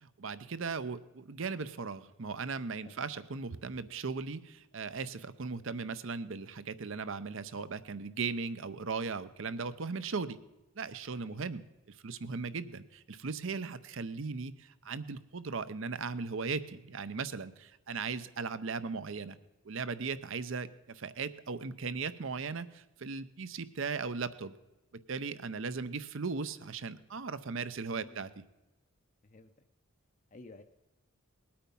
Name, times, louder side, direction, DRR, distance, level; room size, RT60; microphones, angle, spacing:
voice 1, 0.0-10.4 10.8-19.4 19.6-24.6 25.1-28.4, right 4 dB, 65° right, 14 dB, 0.7 m, -38 dB
voice 2, 27.9-28.4 29.2-29.6 30.3-30.6, left 3 dB, 35° left, 7 dB, 0.6 m, -54 dB
20.0 x 8.7 x 5.4 m, 1.0 s
head